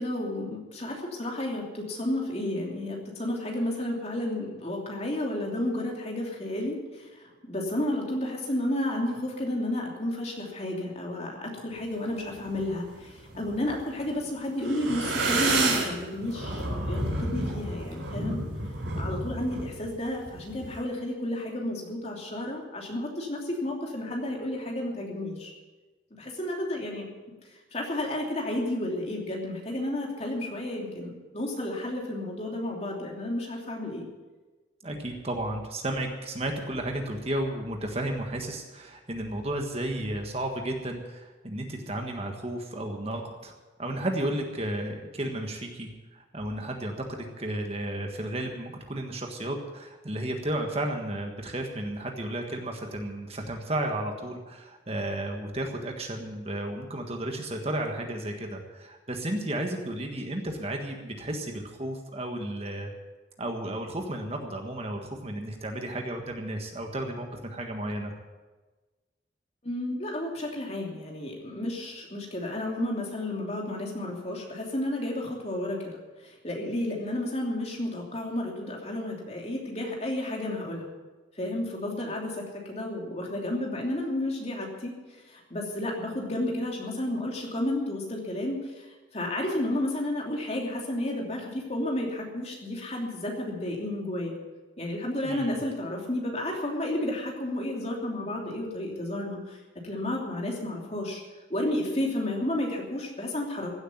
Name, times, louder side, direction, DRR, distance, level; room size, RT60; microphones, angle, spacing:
voice 1, 0.0-7.1 7.5-18.4 18.9-25.5 26.2-27.1 27.7-34.1 69.6-76.0 76.2-80.9 81.4-84.9 85.3-88.9 89.1-94.4 94.8-99.6 99.8-101.2 101.5-103.7, left 1 dB, 35° left, -1 dB, 3.0 m, -32 dB
sound 1, 12.3-12.7 13.2-14.3 14.6-20.8, right 2 dB, 65° right, 4.1 m, -30 dB
voice 2, 34.8-43.5 43.8-62.9 63.4-68.1 95.2-95.6, right 1 dB, 30° right, 3 dB, 1.5 m, -33 dB
15.5 x 8.2 x 9.4 m, 1.2 s
head